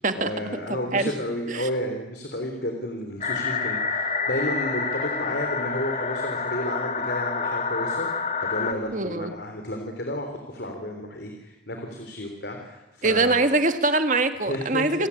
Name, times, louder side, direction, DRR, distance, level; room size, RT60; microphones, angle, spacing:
voice 1, 0.1-8.1 8.4-13.4 14.5-15.1, left 1 dB, 65° left, 3 dB, 3.5 m, -32 dB
voice 2, 0.7-1.1 1.5-1.7 8.9-9.3 13.0-15.1, right 3 dB, 40° right, 8 dB, 1.8 m, -23 dB
sound 1, 3.2-8.7, left 4 dB, 40° left, 1.7 m, -28 dB
28.5 x 17.0 x 10.0 m, 1.0 s
head